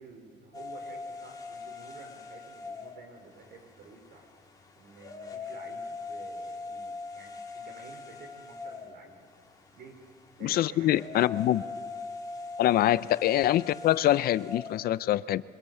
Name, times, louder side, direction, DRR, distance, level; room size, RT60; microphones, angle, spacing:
voice 1, 0.0-4.3 4.8-9.3 9.7-10.0 10.4-11.6 12.8-12.9, right 3 dB, 70° right, 4 dB, 5.1 m, -51 dB
sound 1, 0.5-15.0, left 4 dB, 20° left, 3.1 m, -42 dB
voice 2, 10.4-11.6 12.6-15.4, left 13 dB, 65° left, 17 dB, 0.6 m, -24 dB
25.0 x 21.0 x 8.0 m, 2.3 s
cardioid pair, 110°, 17 cm